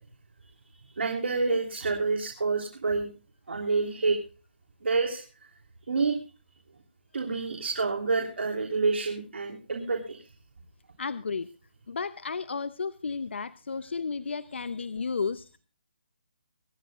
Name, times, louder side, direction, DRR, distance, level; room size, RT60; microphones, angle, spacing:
voice 1, 1.0-3.1 3.5-4.2 4.8-5.2 5.9-6.2 7.1-10.2, right 4 dB, 80° right, 2 dB, 3.4 m, -28 dB
voice 2, 11.0-11.5 11.9-15.6, left 5 dB, 75° left, 15 dB, 0.8 m, -33 dB
25.5 x 11.0 x 2.5 m, 0.35 s
hypercardioid pair, 165°, 6 cm